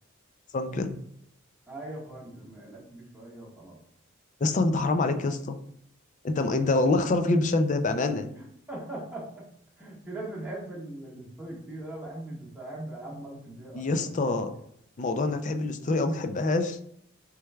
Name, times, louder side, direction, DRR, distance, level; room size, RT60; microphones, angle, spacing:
voice 1, 0.5-0.9 4.4-5.6 6.2-8.3 13.7-14.5 15.0-16.8, left 2 dB, 35° left, 8 dB, 0.4 m, -26 dB
voice 2, 1.7-3.8 6.4-6.6 8.3-9.5 9.8-14.2, right 1 dB, 10° right, -6 dB, 1.4 m, -40 dB
6.4 x 3.3 x 2.3 m, 0.70 s
head